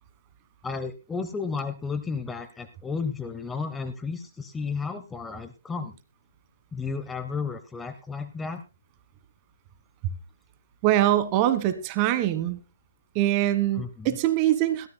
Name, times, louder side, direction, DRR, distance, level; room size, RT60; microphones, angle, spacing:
voice 1, 0.6-5.9 6.7-8.6 13.8-14.2, left 5 dB, 10° left, 10 dB, 0.8 m, -33 dB
voice 2, 10.8-12.6 13.1-14.9, right 13 dB, 30° right, 13 dB, 1.4 m, -23 dB
22.0 x 13.5 x 2.2 m, 0.28 s
hypercardioid pair, 145°, 0 cm